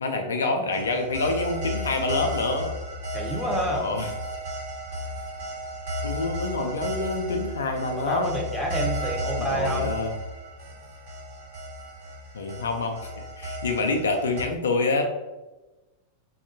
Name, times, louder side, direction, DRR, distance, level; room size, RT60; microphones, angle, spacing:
voice 1, 0.0-2.7 3.7-4.1 6.0-8.3 9.4-10.1 12.3-15.0, left 3 dB, 70° left, 4 dB, 0.3 m, -27 dB
sound 1, 0.7-14.4, equal, 55° right, 1.1 m, -34 dB
voice 2, 3.1-3.9 8.0-9.9, equal, ahead, -1 dB, 0.6 m, -28 dB
3.4 x 2.3 x 2.6 m, 1.1 s
figure-of-eight pair, 90°, 0 cm